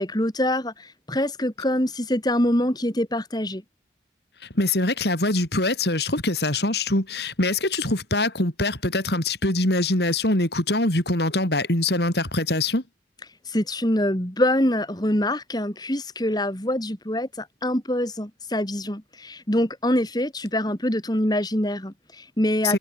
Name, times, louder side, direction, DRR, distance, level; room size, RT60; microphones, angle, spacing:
voice 1, 0.0-3.6 13.4-22.8, left 1 dB, 20° left, 3.3 m, -25 dB
voice 2, 4.5-12.8 22.6-22.8, left 2 dB, 60° left, 5.0 m, -23 dB
head